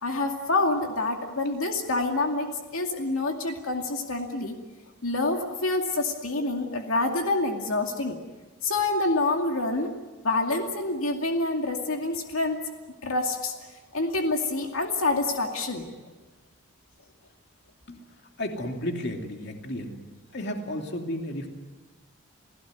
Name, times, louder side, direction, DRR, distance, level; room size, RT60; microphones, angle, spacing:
voice 1, 0.0-4.6 5.0-8.2 8.6-9.9 10.2-12.6 13.0-13.7 13.9-15.9, left 2 dB, 75° left, 3 dB, 2.4 m, -27 dB
voice 2, 18.4-20.0 20.3-21.5, left 1 dB, 50° left, 3 dB, 2.8 m, -33 dB
29.5 x 16.5 x 9.4 m, 1.3 s
head